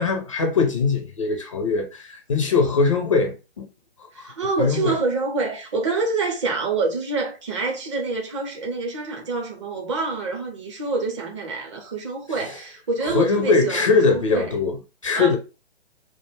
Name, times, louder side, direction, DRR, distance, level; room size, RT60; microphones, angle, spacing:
voice 1, 0.0-3.6 4.2-4.3 4.6-4.9 13.0-15.4, left 4 dB, 30° left, 0.4 m, -21 dB
voice 2, 4.1-14.5 15.1-15.4, right 3 dB, 30° right, 0.6 m, -26 dB
2.4 x 2.2 x 3.0 m
figure-of-eight pair, 140°, 33 cm